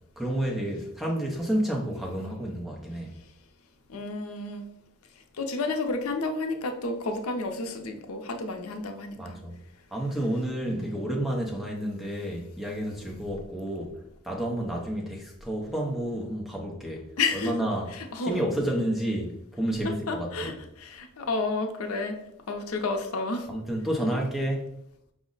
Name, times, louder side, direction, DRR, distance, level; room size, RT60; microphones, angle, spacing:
voice 1, 0.2-3.1 9.2-9.5 9.9-13.9 14.2-17.1 17.3-17.9 18.2-20.5 23.5-24.7, right 1 dB, ahead, 0.6 m, -30 dB
voice 2, 3.9-4.6 5.4-9.4 10.7-11.0 17.2-17.6 17.9-18.4 20.1-22.2 22.5-23.5, left 3 dB, 80° left, 0.5 m, -31 dB
5.0 x 2.0 x 3.8 m
head